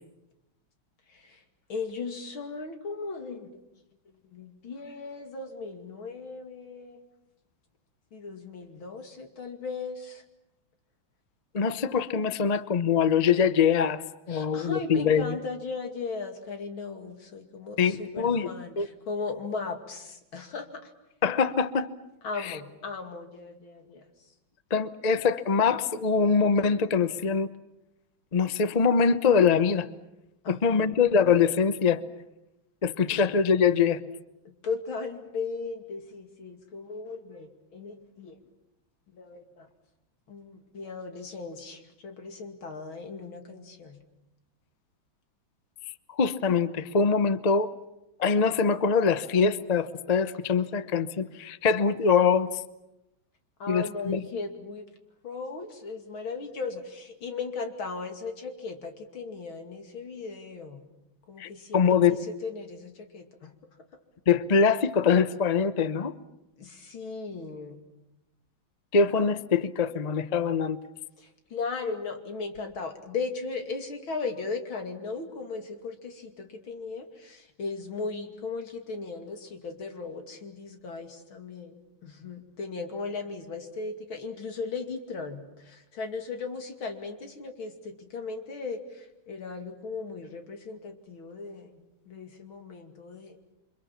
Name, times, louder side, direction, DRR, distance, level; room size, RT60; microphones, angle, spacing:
voice 1, 1.7-3.5 4.3-7.1 8.1-10.2 14.3-20.9 22.2-24.0 30.4-30.9 33.1-33.2 34.4-38.4 39.1-39.7 40.3-44.0 53.6-54.9 55.2-60.9 61.3-63.5 66.6-67.8 71.2-93.5, left 4 dB, 85° left, 5 dB, 3.3 m, -37 dB
voice 2, 11.5-14.0 14.3-15.3 17.8-18.5 18.8-18.9 21.2-21.9 22.4-22.6 24.7-27.5 28.3-29.9 30.5-32.0 32.8-34.0 46.2-47.7 48.2-52.5 53.7-54.2 61.4-62.2 64.3-66.1 68.9-70.8, left 6 dB, 40° left, 13 dB, 0.6 m, -23 dB
29.0 x 25.0 x 7.2 m, 0.91 s
omnidirectional pair, 2.2 m